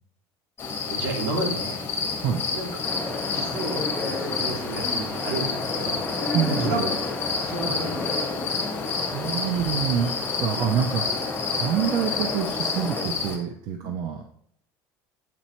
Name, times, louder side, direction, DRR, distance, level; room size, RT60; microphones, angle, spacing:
sound 1, 0.6-13.4, left 5 dB, 25° left, 1.2 m, -30 dB
voice 1, 0.9-1.8 2.5-2.7 3.3-6.0 6.3-8.3 13.8-13.9, right 2 dB, 85° right, 1 dB, 2.3 m, -32 dB
sound 2, 2.8-13.0, left 3 dB, 10° left, 0.9 m, -32 dB
voice 2, 6.3-6.9 9.1-10.1 10.4-14.3, right 8 dB, 55° right, 5 dB, 0.6 m, -27 dB
7.6 x 4.1 x 4.3 m, 0.69 s
cardioid pair, 175°, 8 cm